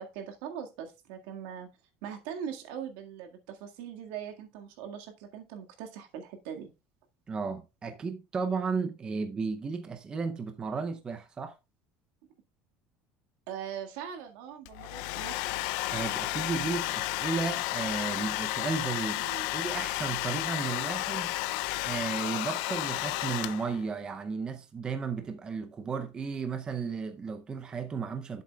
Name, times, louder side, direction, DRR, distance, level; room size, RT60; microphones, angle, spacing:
voice 1, 0.0-1.7 2.0-6.7 13.5-15.5 19.2-19.5, right 8 dB, 75° right, 1.8 m, -41 dB
voice 2, 7.3-11.5 15.9-19.2 19.5-21.4 21.8-28.4, right 5 dB, 15° right, 0.6 m, -34 dB
Domestic sounds home sounds, 14.6-23.9, left 18 dB, 75° left, 0.5 m, -32 dB
11.5 x 7.6 x 2.3 m
cardioid pair, 180°, 5 cm